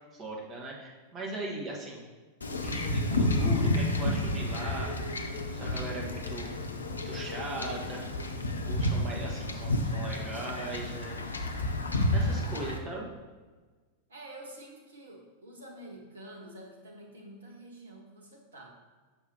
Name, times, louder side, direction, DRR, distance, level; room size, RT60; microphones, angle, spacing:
voice 1, 0.1-2.1 2.6-4.9 5.5-6.5 6.9-8.0 8.6-11.3 11.7-11.8 12.1-13.1, right 1 dB, 25° right, -2 dB, 1.7 m, -39 dB
Wind / Ocean / Boat Water vehicle, 2.4-12.8, left 1 dB, 75° left, 0.6 m, -30 dB
voice 2, 12.5-12.9 14.1-18.7, right 1 dB, 70° right, -1 dB, 1.5 m, -48 dB
6.6 x 5.9 x 3.0 m, 1.4 s
figure-of-eight pair, 90°, 0 cm